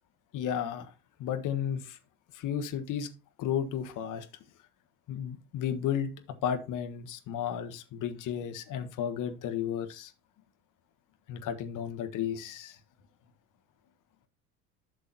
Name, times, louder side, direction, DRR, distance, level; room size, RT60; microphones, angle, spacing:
voice 1, 0.3-0.9 1.2-2.0 2.3-3.1 3.4-4.3 5.1-6.1 6.4-10.1 11.3-12.8, left 9 dB, 45° left, 8 dB, 1.4 m, -33 dB
12.0 x 6.4 x 2.8 m, 0.29 s
figure-of-eight pair, 70°, 45 cm